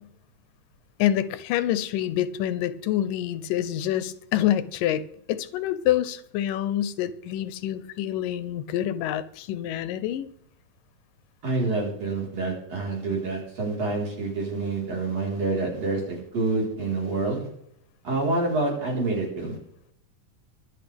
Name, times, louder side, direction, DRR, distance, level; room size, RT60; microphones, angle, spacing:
voice 1, 1.0-10.3, left 12 dB, 80° left, 2.3 m, -27 dB
voice 2, 11.4-17.5 18.0-19.6, right 3 dB, 45° right, 5.2 m, -27 dB
24.0 x 8.8 x 3.5 m
omnidirectional pair, 3.9 m